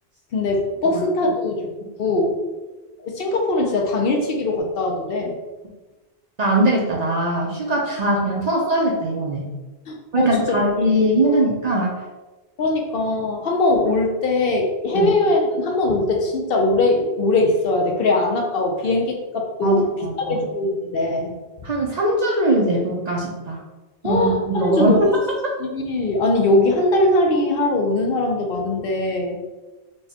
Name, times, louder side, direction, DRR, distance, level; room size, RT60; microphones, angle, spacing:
voice 1, 0.3-1.5 2.0-2.3 3.0-5.4 9.9-10.5 11.2-11.4 12.6-19.8 20.3-21.4 24.0-25.1 25.6-29.4, left 2 dB, 65° left, 1 dB, 0.7 m, -21 dB
voice 2, 6.4-9.5 10.1-12.0 14.9-15.1 19.6-20.4 21.6-23.6 24.0-25.1, right 1 dB, 50° right, -3 dB, 0.5 m, -21 dB
4.5 x 2.2 x 2.8 m, 1.2 s
omnidirectional pair, 1.1 m